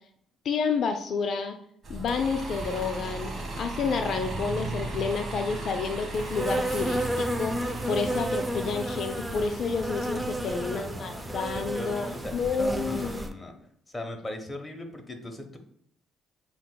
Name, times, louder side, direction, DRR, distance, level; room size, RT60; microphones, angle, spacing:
voice 1, 0.4-1.6 1.9-7.6 7.9-13.2, left 5 dB, 55° left, 6 dB, 0.4 m, -30 dB
Bus, 1.8-12.6, right 2 dB, 45° right, 1.1 m, -37 dB
Insect, 6.1-13.3, right 1 dB, 10° right, 0.4 m, -32 dB
voice 2, 10.4-13.5 13.9-15.6, left 1 dB, 15° left, 3 dB, 0.8 m, -40 dB
7.3 x 2.8 x 2.2 m, 0.67 s
cardioid pair, 100°, 0 cm